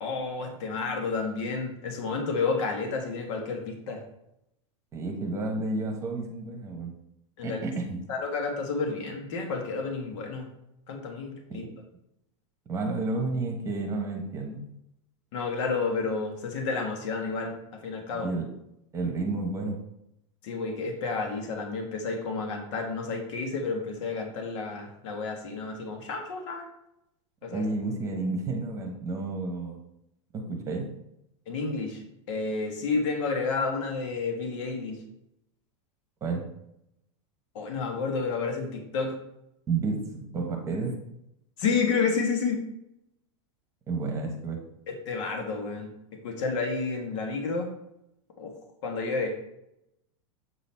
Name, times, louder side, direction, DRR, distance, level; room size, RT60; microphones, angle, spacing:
voice 1, 0.0-4.0 7.4-7.6 8.1-10.5 10.9-11.7 15.3-18.3 20.4-26.7 27.4-27.6 31.5-32.0 32.3-35.0 37.5-39.1 41.6-42.6 44.9-47.7 48.4-48.5 48.8-49.5, left 4 dB, 65° left, 2 dB, 1.5 m, -30 dB
voice 2, 4.9-6.9 7.4-8.0 11.5-11.6 12.7-14.6 18.2-18.5 18.9-19.8 27.5-29.8 30.3-30.9 36.2-36.5 39.7-40.9 43.9-44.6, right 3 dB, 20° right, 2 dB, 1.1 m, -31 dB
7.5 x 4.0 x 4.3 m, 0.81 s
supercardioid pair, 155°, 16 cm